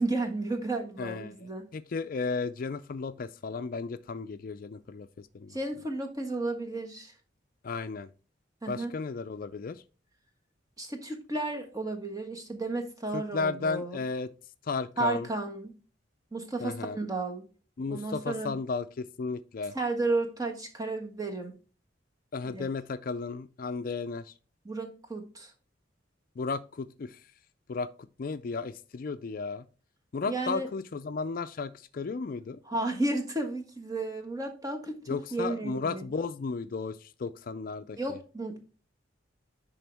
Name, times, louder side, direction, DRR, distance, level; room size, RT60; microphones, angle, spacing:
voice 1, 0.0-1.7 5.5-7.1 8.6-8.9 10.8-14.0 15.0-15.8 16.3-17.5 17.8-18.5 19.7-21.5 22.4-22.7 24.6-25.5 30.3-30.7 32.6-34.9 35.3-36.1 37.9-38.6, right 2 dB, 20° right, 1.3 m, -33 dB
voice 2, 1.0-1.3 1.7-5.6 7.6-8.1 8.7-9.8 13.1-14.3 14.7-15.3 16.6-17.0 17.8-19.7 22.3-24.3 26.4-27.2 27.7-27.9 28.2-29.6 30.1-32.6 35.1-38.2, left 4 dB, 45° left, 0.4 m, -34 dB
10.5 x 3.7 x 3.4 m
head